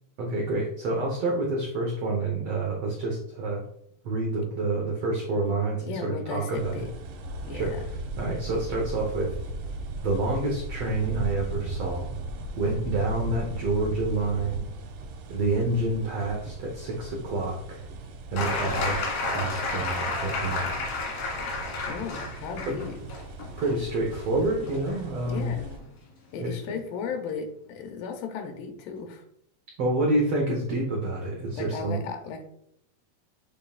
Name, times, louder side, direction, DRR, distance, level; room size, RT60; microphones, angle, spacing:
voice 1, 0.2-3.6 4.0-6.8 7.5-7.7 8.2-9.4 10.0-12.1 12.6-14.6 15.3-17.8 18.3-19.0 19.3-20.8 22.7-22.8 23.6-25.5 26.4-26.5 29.8-32.0, right 2 dB, 65° right, -1 dB, 1.6 m, -28 dB
voice 2, 5.8-6.9 7.4-7.9 21.9-23.0 25.3-25.8 26.3-29.2 31.5-32.4, left 5 dB, 90° left, 5 dB, 2.5 m, -36 dB
sound 1, 6.5-25.8, right 2 dB, 90° right, 2.7 m, -37 dB
sound 2, 18.4-25.9 27.1-27.2, left 3 dB, 55° left, 2.5 m, -32 dB
7.2 x 5.4 x 2.4 m, 0.71 s
omnidirectional pair, 3.9 m